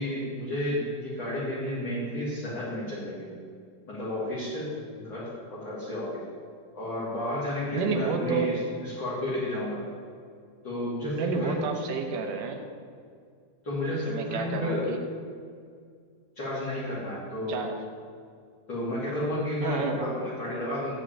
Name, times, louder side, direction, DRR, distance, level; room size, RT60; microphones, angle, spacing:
voice 1, 0.0-3.4 3.9-6.2 6.7-9.8 10.6-11.6 13.6-14.9 16.3-17.6 18.7-21.0, left 1 dB, 35° left, -10 dB, 3.2 m, -32 dB
voice 2, 7.7-8.5 11.2-12.6 13.9-15.0 17.5-17.8 19.6-20.0, right 5 dB, 70° right, 3 dB, 2.6 m, -30 dB
14.5 x 4.8 x 9.1 m, 2.1 s
omnidirectional pair, 4.1 m